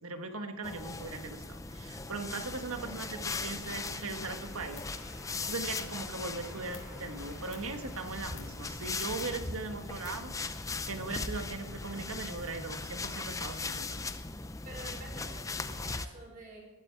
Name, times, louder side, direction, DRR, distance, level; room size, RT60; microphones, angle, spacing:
voice 1, 0.0-4.8 5.5-14.1, right 3 dB, 90° right, 6 dB, 1.6 m, -39 dB
sound 1, 0.6-16.1, left 3 dB, 15° left, 0.5 m, -39 dB
sound 2, 0.9-12.1, equal, 10° right, 3.8 m, -55 dB
sound 3, 3.1-11.0, left 2 dB, 85° left, 4.0 m, -53 dB
voice 2, 14.6-16.6, right 2 dB, 40° right, -1 dB, 5.3 m, -48 dB
19.5 x 12.5 x 4.7 m, 1.1 s
head